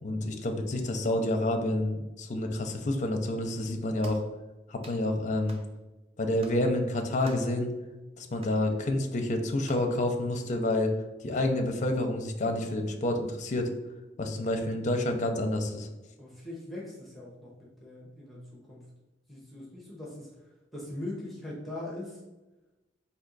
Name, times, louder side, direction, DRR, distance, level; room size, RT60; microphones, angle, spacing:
voice 1, 0.0-4.2 4.7-5.6 6.2-7.7 8.2-10.9 11.2-13.7 14.2-15.9, left 1 dB, 40° left, 4 dB, 0.6 m, -29 dB
sound 1, 4.0-4.3 4.8-5.0 5.5-5.7 6.4-6.6 7.2-7.6 8.4-8.6 9.6-9.9, right 2 dB, 30° right, 0.6 m, -48 dB
voice 2, 16.2-18.9 19.3-20.4 20.7-22.2, left 1 dB, ahead, -5 dB, 0.9 m, -41 dB
4.3 x 2.8 x 3.9 m, 1.1 s
head